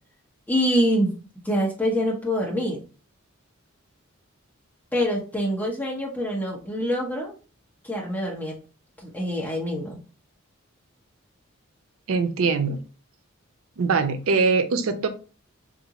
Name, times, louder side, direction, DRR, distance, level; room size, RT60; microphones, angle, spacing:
voice 1, 0.5-1.1 1.4-2.8 4.9-7.3 7.8-8.6 9.0-10.0, equal, 10° left, 1.0 m, -25 dB
voice 2, 12.1-12.8 13.8-15.1, right 4 dB, 85° right, 0.5 m, -22 dB
3.4 x 2.5 x 2.9 m
head